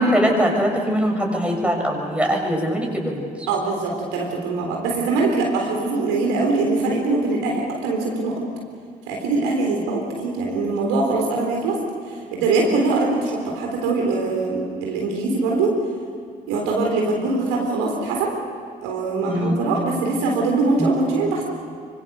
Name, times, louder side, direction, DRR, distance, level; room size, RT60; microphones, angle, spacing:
voice 1, 0.0-3.5 19.3-19.6 20.8-20.9, equal, 5° right, 1 dB, 6.5 m, -21 dB
voice 2, 3.5-8.3 9.1-11.8 12.1-15.7 16.5-18.3 18.8-21.4, right 3 dB, 70° right, 0 dB, 3.8 m, -22 dB
25.5 x 24.5 x 6.8 m, 2.3 s
figure-of-eight pair, 45°, 21 cm